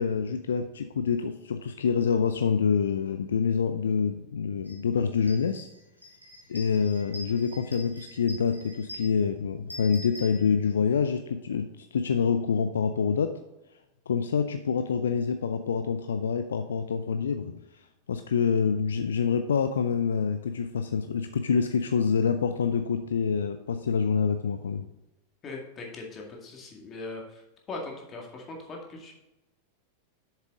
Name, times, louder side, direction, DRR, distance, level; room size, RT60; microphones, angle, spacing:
voice 1, 0.0-5.7 6.5-13.4 14.1-24.9, left 6 dB, 65° left, 9 dB, 0.4 m, -26 dB
sound 1, 4.7-4.8 5.1-11.0, equal, 90° right, 1.7 m, -45 dB
voice 2, 25.4-27.4 27.7-29.1, left 3 dB, 25° left, 0 dB, 2.1 m, -40 dB
7.3 x 7.2 x 3.7 m, 0.94 s
figure-of-eight pair, 90°, 0 cm